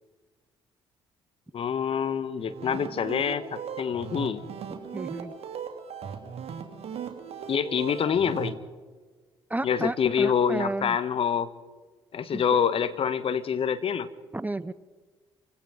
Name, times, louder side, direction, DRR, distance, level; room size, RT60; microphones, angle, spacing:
voice 1, 1.5-4.4 7.5-8.6 9.6-11.5 12.1-14.1, left 7 dB, 50° left, 13 dB, 1.4 m, -26 dB
sound 1, 2.4-8.5, right 7 dB, 55° right, 2.9 m, -38 dB
voice 2, 4.9-5.3 9.5-11.0 12.3-12.6 14.3-14.7, right 2 dB, 15° right, 18 dB, 0.8 m, -32 dB
29.5 x 17.0 x 5.1 m, 1.4 s
hypercardioid pair, 50°, 12 cm